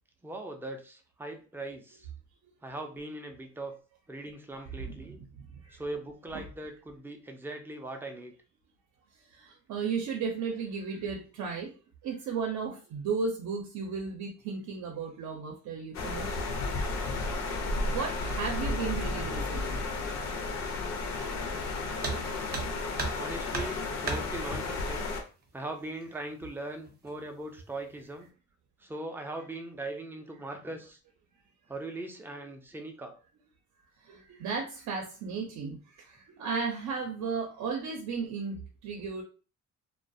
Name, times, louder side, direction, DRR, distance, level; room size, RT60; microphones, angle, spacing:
voice 1, 0.2-2.1 2.6-3.8 4.1-5.2 5.7-8.3 23.2-25.1 25.5-28.3 28.8-31.0 31.7-33.2, right 2 dB, 10° right, 4 dB, 0.3 m, -40 dB
voice 2, 4.8-5.8 6.3-6.4 9.3-11.7 12.0-16.4 17.8-19.9 22.3-22.4 34.0-39.2, right 5 dB, 70° right, 2 dB, 0.5 m, -35 dB
sound 1, 15.9-25.2, left 3 dB, 65° left, 0.5 m, -33 dB
sound 2, 22.0-22.2 22.5-23.2 23.5-24.2 25.4-25.5 26.0-26.1 26.8-27.2 27.6-28.0, right 4 dB, 35° right, 0.7 m, -34 dB
2.3 x 2.1 x 2.5 m, 0.36 s
cardioid pair, 120°, 30 cm